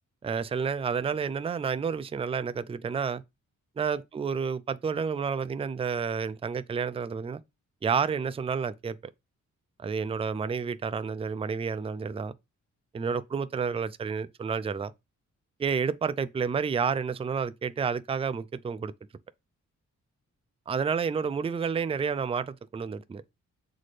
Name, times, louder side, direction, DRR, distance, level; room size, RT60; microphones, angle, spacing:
voice 1, 0.2-3.2 3.8-7.4 7.8-9.0 9.8-12.3 12.9-14.9 15.6-18.9 20.7-23.2, right 6 dB, 20° right, 0.4 m, -30 dB
7.4 x 4.2 x 3.2 m
cardioid pair, 110°, 30 cm